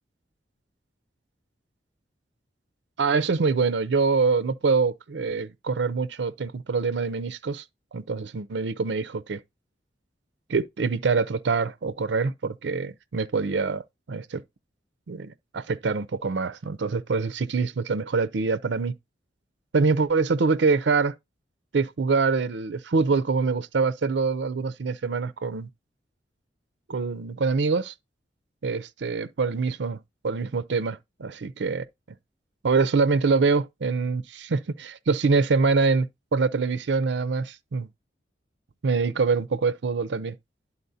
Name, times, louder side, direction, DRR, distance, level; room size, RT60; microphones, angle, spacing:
voice 1, 3.0-7.6 7.9-9.4 10.5-13.8 14.1-14.4 15.1-18.9 19.7-21.1 21.7-25.7 26.9-27.9 28.6-30.0 30.2-31.8 32.6-37.9 38.8-40.3, right 4 dB, 80° right, 0.5 m, -25 dB
11.5 x 4.2 x 2.7 m
head